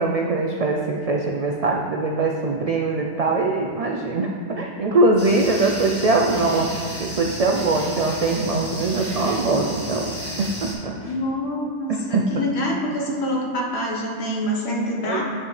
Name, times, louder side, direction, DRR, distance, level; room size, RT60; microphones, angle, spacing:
voice 1, 0.0-6.7 7.0-11.1 11.9-12.2 15.1-15.2, right 3 dB, 75° right, 1 dB, 0.3 m, -22 dB
sound 1, 5.2-10.7, equal, 30° left, 1.3 m, -33 dB
voice 2, 11.0-15.2, equal, 65° left, -2 dB, 1.3 m, -26 dB
9.0 x 5.4 x 3.2 m, 2.2 s
omnidirectional pair, 1.2 m